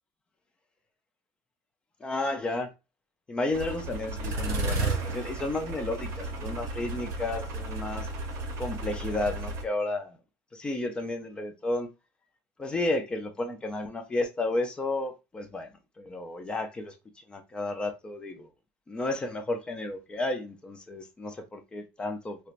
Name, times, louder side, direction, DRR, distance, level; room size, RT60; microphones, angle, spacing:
voice 1, 2.0-2.7 3.3-8.1 8.6-10.2 10.5-11.9 12.6-15.7 16.0-16.9 17.3-18.5 18.9-22.4, left 2 dB, 15° left, 0.4 m, -32 dB
sound 1, 3.5-9.6, right 2 dB, 45° right, 0.7 m, -33 dB
4.3 x 2.1 x 2.4 m
cardioid pair, 170°, 7 cm